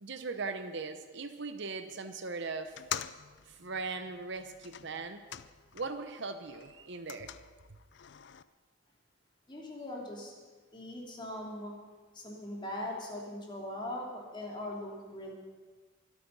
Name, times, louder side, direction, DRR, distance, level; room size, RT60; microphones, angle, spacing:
voice 1, 0.0-2.8 3.5-5.2 5.7-7.3, right 4 dB, 55° right, 9 dB, 0.9 m, -39 dB
sound 1, 2.7-6.1 6.4-8.4, left 10 dB, 55° left, 0.5 m, -45 dB
voice 2, 9.5-10.3 10.7-11.7 12.1-15.3, left 1 dB, 20° left, -2 dB, 2.8 m, -40 dB
24.0 x 8.7 x 5.4 m, 1.4 s
head